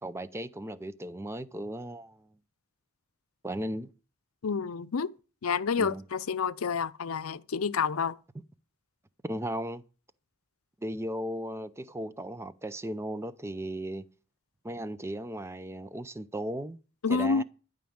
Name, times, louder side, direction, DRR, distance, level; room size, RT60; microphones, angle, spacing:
voice 1, 0.0-2.3 3.4-3.9 5.8-6.0 9.2-9.8 10.8-14.0 14.6-16.8 17.1-17.4, right 1 dB, 10° right, 0.5 m, -36 dB
voice 2, 4.4-5.1 5.4-8.2 17.0-17.4, left 5 dB, 75° left, 0.6 m, -29 dB
12.5 x 5.2 x 8.7 m
head